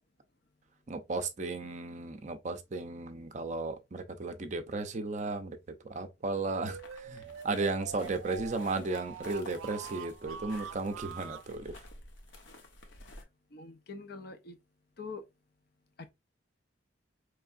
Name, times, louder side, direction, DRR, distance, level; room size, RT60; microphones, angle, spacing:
voice 1, 0.9-5.6 5.8-11.8, right 3 dB, 40° right, 0.5 m, -35 dB
sound 1, 6.5-11.5, right 7 dB, 85° right, 0.3 m, -44 dB
sound 2, 6.8-13.2, left 2 dB, 70° left, 1.0 m, -52 dB
voice 2, 13.5-14.6 15.0-15.2, left 4 dB, 50° left, 0.6 m, -44 dB
4.6 x 3.2 x 2.4 m
head